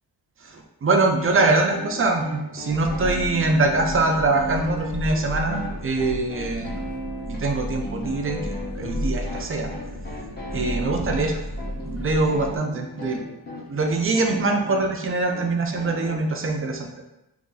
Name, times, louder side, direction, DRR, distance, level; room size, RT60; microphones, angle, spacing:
voice 1, 0.4-6.8 7.3-9.7 10.5-11.4 11.8-13.2 13.7-16.9, right 3 dB, 35° right, 3 dB, 0.4 m, -23 dB
sound 1, 1.3-16.2, equal, 25° left, 0.8 m, -36 dB
sound 2, 2.7-12.6, left 1 dB, 80° left, 1.2 m, -33 dB
2.7 x 2.7 x 3.8 m, 0.89 s
wide cardioid pair, 120°, 40 cm